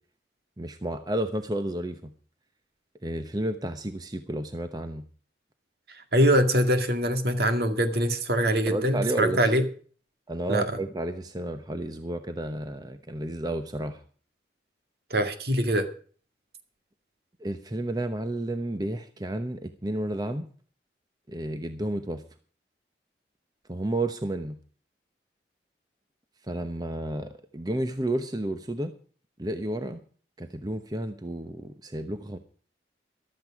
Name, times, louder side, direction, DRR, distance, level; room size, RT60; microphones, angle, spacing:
voice 1, 0.6-2.1 3.0-5.0 8.7-9.4 10.3-14.0 17.4-20.4 21.3-22.2 23.7-24.6 26.5-28.9 29.4-30.0 30.4-32.4, right 1 dB, 20° right, 8 dB, 0.9 m, -31 dB
voice 2, 6.1-9.7 10.5-10.7 15.1-15.9, equal, 60° right, 7 dB, 2.1 m, -23 dB
14.5 x 12.5 x 4.8 m, 0.43 s
head